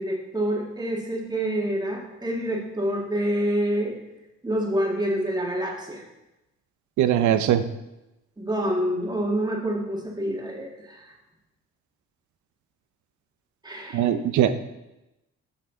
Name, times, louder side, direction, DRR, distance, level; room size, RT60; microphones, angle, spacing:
voice 1, 0.0-4.0 4.4-6.0 8.4-11.1 13.6-14.1, right 1 dB, 15° right, -1 dB, 1.7 m, -27 dB
voice 2, 7.0-7.6 13.9-14.6, right 10 dB, 75° right, 11 dB, 0.6 m, -21 dB
7.2 x 6.1 x 3.8 m, 0.94 s
cardioid pair, 90°, 30 cm